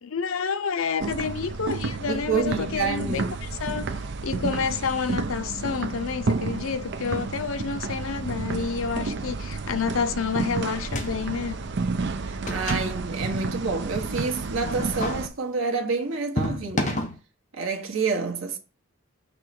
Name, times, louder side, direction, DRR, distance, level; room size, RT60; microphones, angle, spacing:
voice 1, 0.0-3.3 3.6-3.9 4.2-11.6, left 5 dB, 90° left, 0.6 m, -29 dB
sound 1, 1.0-15.3, right 3 dB, 60° right, 0.6 m, -31 dB
voice 2, 2.1-3.4 12.2-17.1 17.5-18.6, right 4 dB, 90° right, 1.4 m, -28 dB
sound 2, 10.8-11.4 11.7-11.8 12.3-13.4 14.6-15.3 16.4-17.2, left 1 dB, 35° left, 1.1 m, -30 dB
6.6 x 3.2 x 5.8 m
head